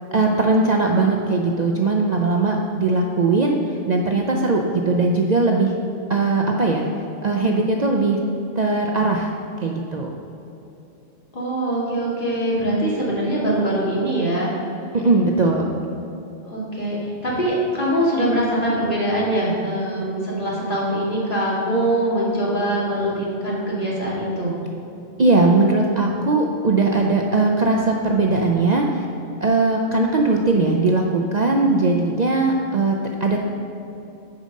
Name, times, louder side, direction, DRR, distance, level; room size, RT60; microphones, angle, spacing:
voice 1, 0.1-3.6 3.9-5.7 6.1-6.9 7.2-8.2 8.6-9.3 9.6-10.1 14.9-15.7 25.2-29.0 29.4-33.4, right 3 dB, 45° right, 0 dB, 0.6 m, -19 dB
voice 2, 11.3-14.5 16.4-24.5, right 1 dB, 45° left, -6 dB, 2.5 m, -23 dB
10.5 x 5.1 x 6.4 m, 2.9 s
omnidirectional pair, 1.2 m